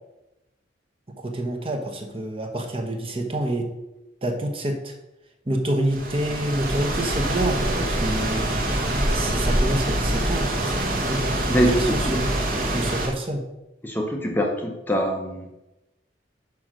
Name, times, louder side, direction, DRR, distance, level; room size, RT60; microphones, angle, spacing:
voice 1, 1.2-3.7 4.2-4.9 5.5-8.6 9.1-12.3 12.7-13.4, right 1 dB, 30° right, 2 dB, 1.0 m, -28 dB
sound 1, 5.9-13.1, right 1 dB, 50° right, 1.3 m, -25 dB
voice 2, 11.5-12.3 13.8-15.6, equal, 10° left, 1 dB, 0.7 m, -24 dB
6.1 x 5.0 x 6.1 m, 0.96 s
head